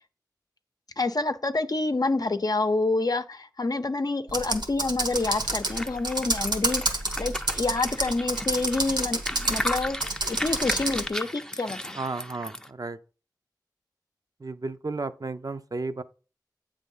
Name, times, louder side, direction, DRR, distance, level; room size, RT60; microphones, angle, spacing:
voice 1, 1.0-12.0, left 3 dB, 60° left, 0.6 m, -28 dB
Computer keyboard, 4.3-11.1, right 2 dB, 90° right, 1.2 m, -29 dB
sound 1, 5.1-12.7, left 1 dB, 10° left, 0.5 m, -35 dB
voice 2, 12.0-13.0 14.4-16.0, right 3 dB, 55° right, 0.5 m, -33 dB
8.3 x 3.4 x 5.4 m
wide cardioid pair, 55°, 7 cm